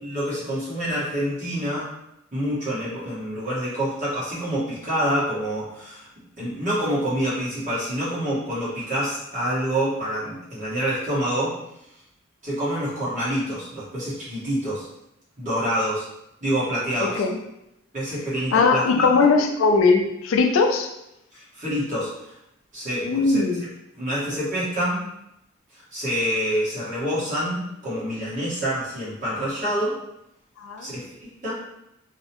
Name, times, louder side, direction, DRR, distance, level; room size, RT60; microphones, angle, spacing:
voice 1, 0.0-1.9 2.3-6.1 6.4-11.5 12.4-14.9 15.4-16.1 16.4-17.2 17.9-19.2 21.3-22.3 22.7-23.4 23.9-25.0 25.7-30.0 30.8-31.5, equal, 40° right, -10 dB, 1.2 m, -27 dB
voice 2, 17.0-17.4 18.5-20.9 23.0-23.6 30.6-31.0, left 4 dB, 85° left, 4 dB, 0.3 m, -20 dB
2.7 x 2.1 x 2.9 m, 0.83 s
head